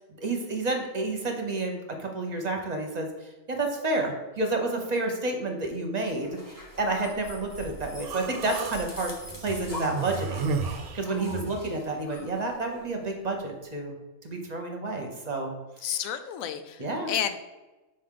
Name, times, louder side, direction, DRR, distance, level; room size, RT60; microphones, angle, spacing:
voice 1, 0.2-3.1 3.5-6.4 6.8-9.1 9.4-14.0 14.2-15.5 15.9-16.0 16.8-17.1, right 2 dB, 35° right, 2 dB, 0.9 m, -30 dB
sound 1, 6.2-13.2, equal, 15° left, 0.9 m, -43 dB
Human voice, 8.0-8.8 9.7-11.7, right 5 dB, 65° right, 0.6 m, -32 dB
voice 2, 15.8-17.4, left 9 dB, 85° left, 10 dB, 1.0 m, -31 dB
6.2 x 4.6 x 3.8 m, 1.1 s
omnidirectional pair, 1.4 m